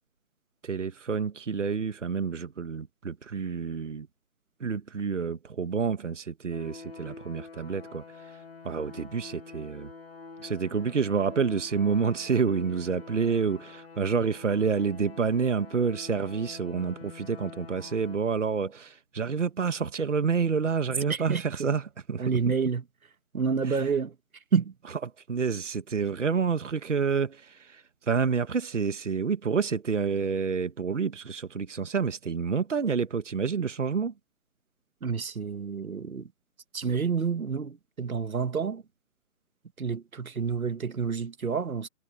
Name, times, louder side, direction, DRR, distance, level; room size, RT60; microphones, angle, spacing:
voice 1, 0.6-4.1 4.6-9.9 10.4-21.8 22.1-22.4 23.7-23.8 25.3-34.1, right 5 dB, 60° right, 1.7 m, -28 dB
sound 1, 6.5-18.2, left 4 dB, 45° left, 2.2 m, -46 dB
voice 2, 21.1-21.7 22.2-22.8 23.3-24.2 24.5-24.7 35.0-36.3 36.7-38.8 39.8-41.9, right 5 dB, 85° right, 1.9 m, -29 dB
hypercardioid pair, 175°, 41 cm